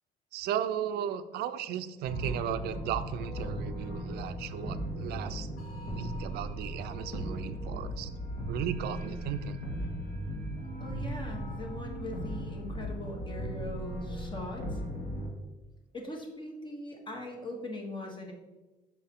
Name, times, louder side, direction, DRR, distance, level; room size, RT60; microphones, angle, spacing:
voice 1, 0.3-5.5 5.9-8.1 8.5-9.6, right 9 dB, 70° right, 11 dB, 0.4 m, -35 dB
sound 1, 2.0-15.3, equal, 70° left, 1.8 m, -37 dB
voice 2, 10.8-14.6 15.9-18.3, left 2 dB, 30° left, 1 dB, 1.2 m, -41 dB
5.9 x 4.4 x 3.6 m, 1.2 s
cardioid pair, 110°, 17 cm